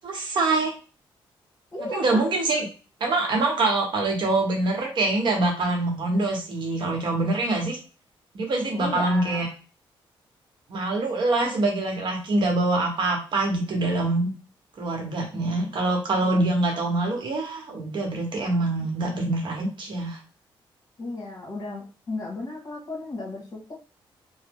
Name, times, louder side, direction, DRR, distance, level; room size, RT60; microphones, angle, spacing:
voice 1, 0.0-0.7 1.9-2.7 3.0-7.8 8.3-9.5 10.7-14.3 14.8-20.2, right 2 dB, 55° right, 1 dB, 0.9 m, -24 dB
voice 2, 1.7-2.3 8.8-9.5 16.2-16.4 21.0-23.7, left 2 dB, 40° left, -1 dB, 1.3 m, -34 dB
2.9 x 2.1 x 3.5 m, 0.35 s
cardioid pair, 125°, 9 cm